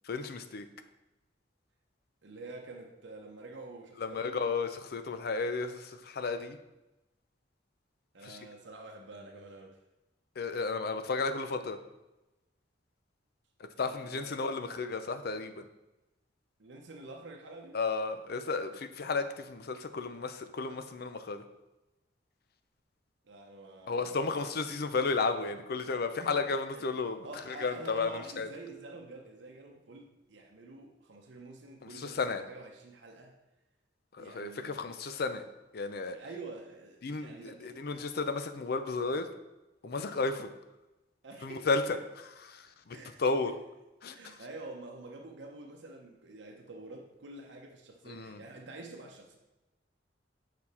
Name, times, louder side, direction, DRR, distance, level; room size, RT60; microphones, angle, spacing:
voice 1, 0.1-0.7 4.0-6.6 8.3-8.4 10.4-11.8 13.8-15.6 17.7-21.4 23.9-28.5 32.0-32.4 34.2-35.4 35.7-36.2 37.0-39.3 39.8-40.4 41.4-41.8 42.5-43.5 44.0-44.2 48.1-48.4, left 4 dB, 55° left, 9 dB, 0.5 m, -33 dB
voice 2, 2.2-4.4 8.1-9.8 13.7-14.4 16.6-17.8 23.2-24.8 26.2-26.3 26.7-26.9 27.2-33.3 34.2-34.9 36.1-38.0 40.0-40.5 41.2-42.0 42.9-43.6 44.1-49.4, right 2 dB, 75° right, 1 dB, 0.8 m, -48 dB
6.7 x 4.2 x 4.2 m, 1.0 s
head